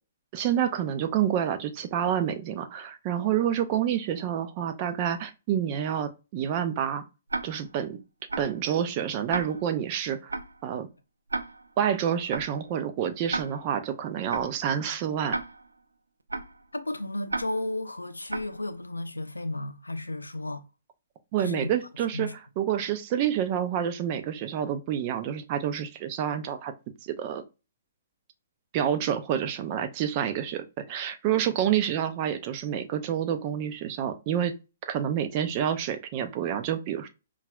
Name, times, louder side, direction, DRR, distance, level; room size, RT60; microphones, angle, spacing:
voice 1, 0.3-7.0 7.4-8.0 8.4-10.3 10.6-10.9 11.8-15.4 21.3-22.3 22.6-26.7 27.0-27.4 28.7-34.5 34.9-37.1, right 9 dB, 35° right, 0.5 m, -28 dB
Tick-tock, 7.3-7.8 8.3-8.6 9.3-9.8 10.3-10.6 11.3-11.8 12.3-12.6 13.3-13.8 14.3-14.6 15.3-15.8 16.3-16.6 17.3-17.8 18.3-18.6, right 2 dB, 85° right, 0.4 m, -34 dB
voice 2, 16.7-20.6 21.4-21.7 22.1-22.4, left 2 dB, 90° left, 0.5 m, -33 dB
5.6 x 2.3 x 2.3 m
figure-of-eight pair, 125°, 0 cm